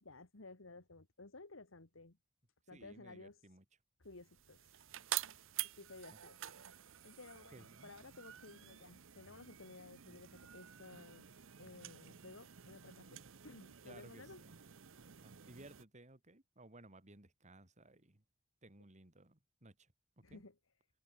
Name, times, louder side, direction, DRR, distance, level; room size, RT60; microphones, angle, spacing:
voice 1, 0.0-2.2 2.7-3.4 4.0-4.6 5.6-6.4 7.0-11.3 11.6-14.4 20.2-20.6, left 3 dB, 70° left, 1.9 m, -55 dB
voice 2, 2.7-3.6 6.1-6.2 7.5-7.9 13.8-14.6 15.2-18.2 18.6-19.9 20.2-20.4, right 2 dB, 35° right, 3.1 m, -59 dB
sound 1, 4.2-15.8, right 13 dB, 70° right, 0.9 m, -48 dB
head